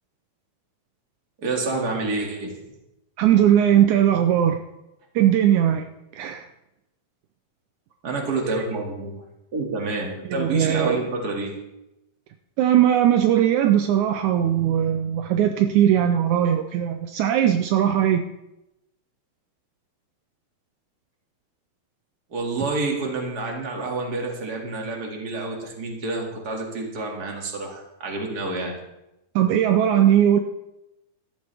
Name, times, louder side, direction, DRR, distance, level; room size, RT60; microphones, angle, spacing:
voice 1, 1.4-2.6 8.0-9.2 9.5-11.6 22.3-28.8, right 3 dB, 30° right, 1 dB, 2.1 m, -28 dB
voice 2, 3.2-4.6 5.1-5.8 6.1-6.4 8.4-8.6 10.3-11.0 12.6-18.2 29.3-30.4, right 10 dB, 85° right, 6 dB, 1.7 m, -19 dB
16.0 x 13.0 x 3.5 m, 0.90 s
omnidirectional pair, 4.2 m